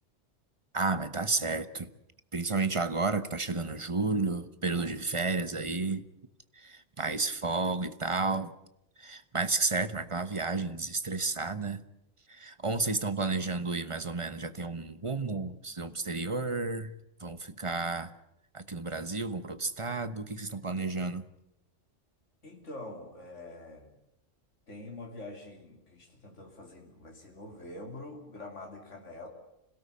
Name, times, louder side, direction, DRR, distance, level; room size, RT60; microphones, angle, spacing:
voice 1, 0.7-1.9 2.3-6.0 6.6-8.5 9.0-11.8 12.3-16.9 17.2-18.1 18.5-21.2, right 3 dB, 25° right, 12 dB, 1.1 m, -32 dB
voice 2, 22.4-24.0 24.7-29.3, left 2 dB, 75° left, 1 dB, 3.6 m, -45 dB
26.0 x 17.5 x 8.6 m, 0.84 s
omnidirectional pair, 1.3 m